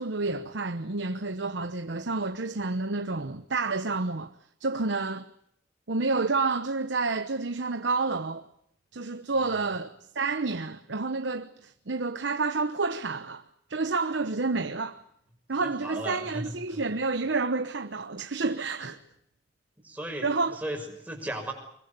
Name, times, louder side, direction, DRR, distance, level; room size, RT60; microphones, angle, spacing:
voice 1, 0.0-4.3 4.6-5.2 5.9-8.5 8.9-13.4 13.7-15.0 15.5-19.0 20.2-20.6, right 3 dB, 75° right, 1.0 m, -29 dB
voice 2, 15.6-16.4 16.7-16.8 19.8-20.3 20.5-21.5, right 1 dB, 10° right, 6.3 m, -36 dB
25.0 x 22.0 x 8.3 m
head